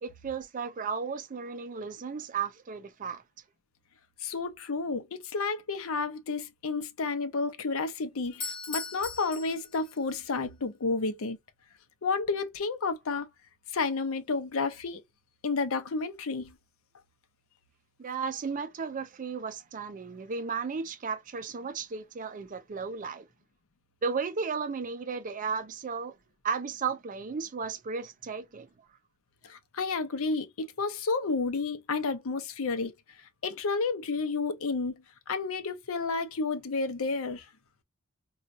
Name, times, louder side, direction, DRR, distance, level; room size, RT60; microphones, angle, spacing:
voice 1, 0.0-3.2 18.0-23.3 24.0-26.2 26.4-28.7, right 5 dB, 40° right, 0.4 m, -34 dB
voice 2, 4.2-11.4 12.0-13.3 13.7-15.0 15.4-16.5 29.4-32.9 33.4-34.9 35.3-37.5, left 4 dB, 70° left, 0.6 m, -31 dB
Doorbell, 8.3-10.2, left 4 dB, 25° left, 0.9 m, -39 dB
4.1 x 2.3 x 2.4 m
head